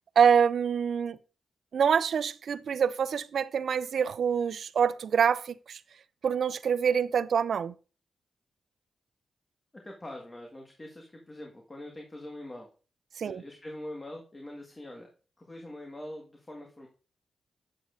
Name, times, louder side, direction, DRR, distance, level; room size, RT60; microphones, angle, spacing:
voice 1, 0.2-1.2 1.7-5.8 6.2-7.7 13.2-13.4, right 7 dB, 70° right, 0.4 m, -26 dB
voice 2, 9.8-12.7 13.2-15.1 15.4-16.9, left 1 dB, 30° left, 1.7 m, -43 dB
8.9 x 7.4 x 2.6 m
cardioid pair, 55°, 0 cm